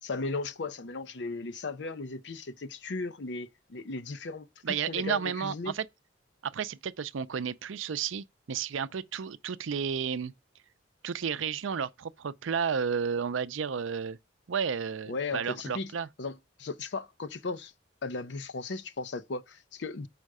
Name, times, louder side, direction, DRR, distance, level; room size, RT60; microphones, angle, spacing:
voice 1, 0.0-5.7 15.1-15.9 16.2-17.7 18.0-20.1, left 3 dB, 65° left, 0.6 m, -36 dB
voice 2, 4.6-5.9 6.4-10.3 11.0-14.2 14.5-16.1, right 7 dB, 85° right, 0.5 m, -32 dB
6.4 x 4.9 x 4.8 m
head